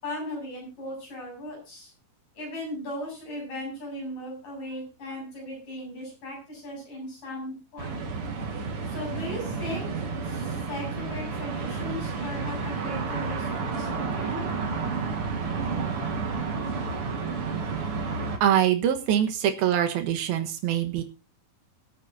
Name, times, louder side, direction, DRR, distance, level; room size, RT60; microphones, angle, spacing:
voice 1, 0.0-1.9 2.4-8.0 8.9-9.9 10.2-14.5, left 1 dB, 60° left, -1 dB, 9.2 m, -37 dB
sound 1, 7.8-18.4, right 4 dB, 45° right, 2.3 m, -31 dB
voice 2, 18.4-21.0, right 10 dB, 80° right, 6 dB, 3.2 m, -24 dB
25.0 x 8.5 x 2.7 m, 0.30 s
omnidirectional pair, 4.2 m